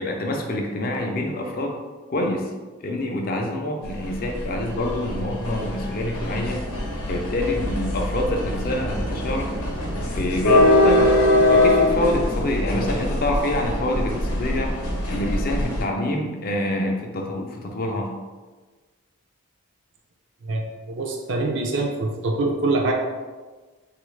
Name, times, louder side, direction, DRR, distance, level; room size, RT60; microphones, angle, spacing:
voice 1, 0.0-1.7 2.1-2.5 2.8-6.6 7.1-9.5 10.1-11.2 11.5-14.7 15.0-18.1, left 1 dB, 40° left, 2 dB, 0.4 m, -26 dB
sound 1, 3.8-15.8, left 1 dB, 90° left, 0.7 m, -22 dB
voice 2, 20.4-22.9, right 2 dB, 55° right, 1 dB, 0.4 m, -24 dB
3.3 x 2.4 x 3.1 m, 1.3 s
head